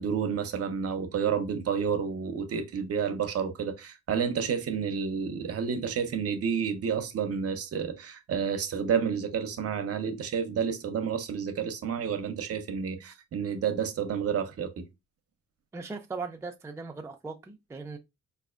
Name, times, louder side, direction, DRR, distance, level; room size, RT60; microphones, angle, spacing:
voice 1, 0.0-14.9, right 7 dB, 50° right, 0.7 m, -30 dB
voice 2, 15.7-18.0, right 4 dB, 10° right, 0.4 m, -38 dB
4.0 x 2.5 x 2.4 m
cardioid pair, 90°, 30 cm